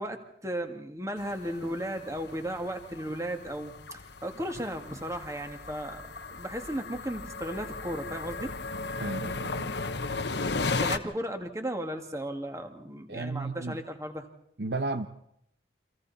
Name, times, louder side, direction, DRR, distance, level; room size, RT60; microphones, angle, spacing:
voice 1, 0.0-8.5 10.7-14.3, right 1 dB, 15° right, 5 dB, 2.2 m, -35 dB
sound 1, 1.2-11.0, left 3 dB, 60° left, 1.1 m, -36 dB
voice 2, 9.0-9.7 13.1-13.8 14.6-15.1, right 2 dB, 60° right, 9 dB, 1.1 m, -33 dB
29.5 x 26.0 x 4.2 m, 0.74 s
head